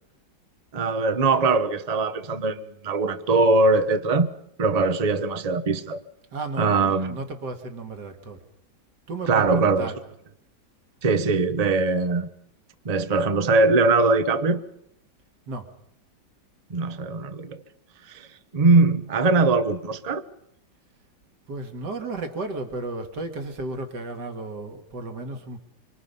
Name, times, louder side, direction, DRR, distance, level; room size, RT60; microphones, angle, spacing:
voice 1, 0.7-4.3 4.6-6.0 6.6-7.2 9.3-9.9 11.0-12.3 12.8-14.6 16.7-17.6 18.1-18.3 18.5-20.2, right 3 dB, 30° right, 0.7 m, -21 dB
voice 2, 6.3-8.4 9.1-10.0 15.5-15.7 21.5-25.6, right 2 dB, 55° right, 2.6 m, -34 dB
25.5 x 24.5 x 5.6 m
omnidirectional pair, 2.1 m